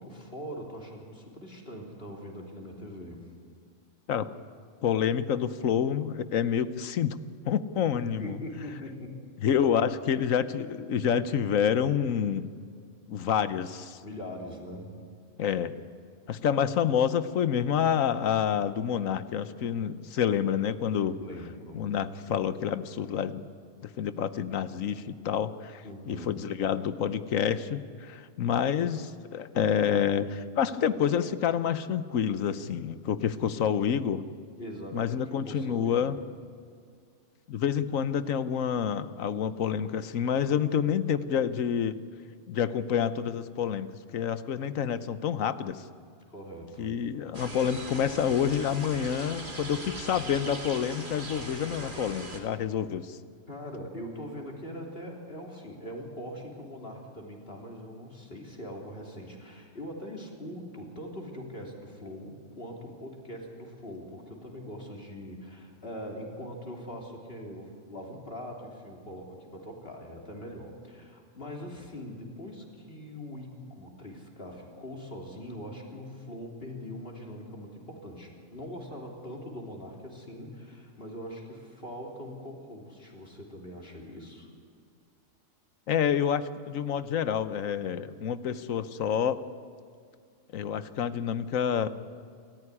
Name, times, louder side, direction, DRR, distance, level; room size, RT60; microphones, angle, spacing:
voice 1, 0.0-3.3 7.9-9.3 14.0-15.0 21.2-21.8 25.8-26.4 34.6-36.2 46.3-47.0 53.5-84.5, equal, 45° left, 0 dB, 3.7 m, -42 dB
voice 2, 4.8-7.2 7.4-8.4 9.4-12.5 13.1-14.0 15.4-15.7 16.3-21.2 21.7-23.4 23.8-34.2 34.9-36.2 37.5-42.0 42.5-43.9 44.1-45.8 46.8-53.2 85.9-89.4 90.5-91.9, left 8 dB, 85° left, 13 dB, 1.3 m, -28 dB
sound 1, 47.3-52.4, right 1 dB, 40° right, 2.7 m, -40 dB
28.5 x 14.5 x 9.9 m, 2.2 s
omnidirectional pair, 1.4 m